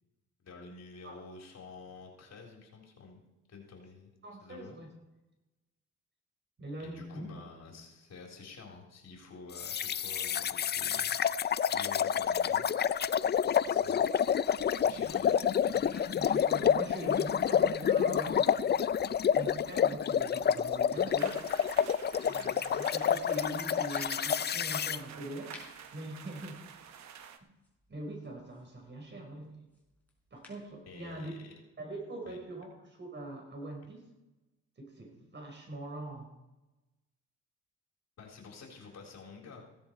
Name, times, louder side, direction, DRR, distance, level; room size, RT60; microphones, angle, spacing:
voice 1, 0.4-3.2 3.5-4.1 4.4-4.8 6.8-11.2 11.7-12.7 13.6-14.0 14.8-15.4 30.9-31.4 32.3-32.4 38.2-39.7, left 4 dB, 60° left, 0 dB, 3.9 m, -49 dB
voice 2, 4.2-4.9 6.6-7.4 15.0-15.3 16.2-18.8 19.3-21.4 21.7-21.8 22.3-27.0 27.9-29.5 30.3-31.3 31.8-34.0 34.8-36.3, right 1 dB, 40° right, 2 dB, 4.9 m, -43 dB
sound 1, 9.6-25.0, left 8 dB, 35° left, 0.4 m, -29 dB
sound 2, 15.5-30.7, left 2 dB, 5° left, 5.3 m, -58 dB
sound 3, 21.2-27.4, right 8 dB, 65° right, 1.1 m, -49 dB
16.0 x 10.5 x 4.6 m, 1.0 s
cardioid pair, 90°, 30 cm